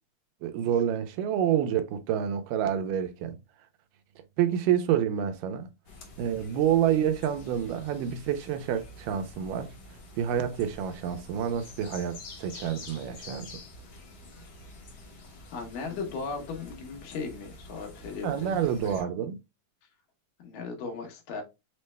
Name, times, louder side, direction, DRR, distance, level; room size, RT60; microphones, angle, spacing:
voice 1, 0.4-3.4 4.4-5.7 6.2-9.7 10.2-13.5 18.2-19.4, right 9 dB, 85° right, 2.2 m, -28 dB
sound 1, 5.8-19.0, left 2 dB, 70° left, 1.1 m, -48 dB
voice 2, 15.5-18.6 18.8-19.1 20.4-21.4, left 4 dB, 90° left, 2.9 m, -37 dB
6.1 x 2.1 x 3.2 m
omnidirectional pair, 3.8 m